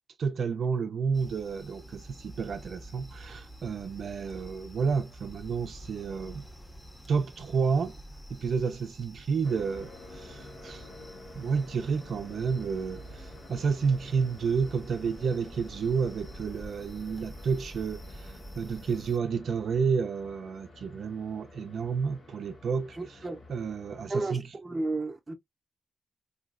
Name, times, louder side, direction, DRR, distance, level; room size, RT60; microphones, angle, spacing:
voice 1, 0.2-6.4 7.1-8.0 8.3-10.9 11.4-23.2 23.5-24.4, right 5 dB, 75° right, 0.4 m, -30 dB
sound 1, 1.1-19.2, right 1 dB, 15° left, 0.7 m, -48 dB
sound 2, 9.4-24.1, left 2 dB, 70° left, 1.1 m, -50 dB
voice 2, 23.0-23.4 24.1-25.3, right 2 dB, 25° right, 0.6 m, -32 dB
3.0 x 2.6 x 2.4 m
wide cardioid pair, 105°, 0 cm